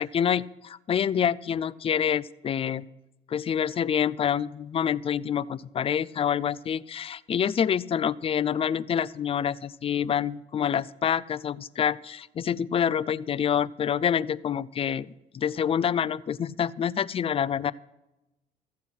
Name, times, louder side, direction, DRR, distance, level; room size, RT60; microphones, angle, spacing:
voice 1, 0.0-2.9 3.3-17.7, left 8 dB, 35° left, 19 dB, 0.4 m, -27 dB
14.5 x 7.7 x 5.7 m, 0.97 s
cardioid pair, 110°, 17 cm